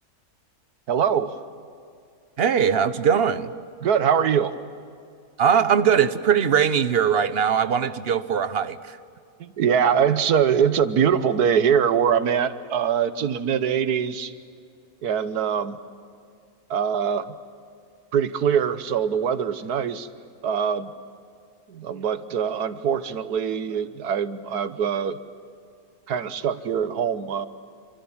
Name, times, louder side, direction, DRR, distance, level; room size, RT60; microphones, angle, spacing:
voice 1, 0.9-1.4 3.8-4.5 9.4-14.3 15.0-15.8 16.7-17.4 18.1-20.1 20.4-20.9 21.7-25.2 26.1-27.5, right 7 dB, 85° right, 12 dB, 1.6 m, -23 dB
voice 2, 2.4-3.5 5.4-9.0, right 7 dB, 45° right, 13 dB, 1.1 m, -21 dB
28.5 x 26.5 x 7.3 m, 2.4 s
omnidirectional pair, 1.6 m